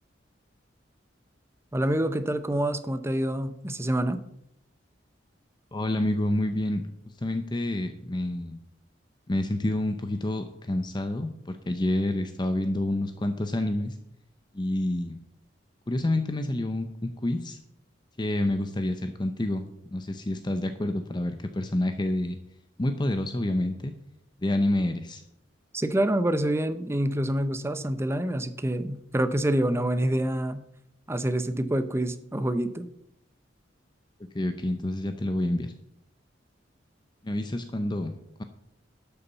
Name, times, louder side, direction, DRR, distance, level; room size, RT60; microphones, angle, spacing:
voice 1, 1.7-4.2 25.7-30.6 31.1-32.9, right 1 dB, 15° right, 11 dB, 0.7 m, -27 dB
voice 2, 5.7-6.8 7.2-8.6 9.3-14.0 14.5-15.2 15.9-17.6 18.2-19.6 19.9-22.3 22.8-23.9 24.4-25.2 34.3-35.7 37.2-38.1, left 1 dB, 25° left, 8 dB, 0.6 m, -28 dB
12.5 x 7.0 x 5.6 m, 0.80 s
head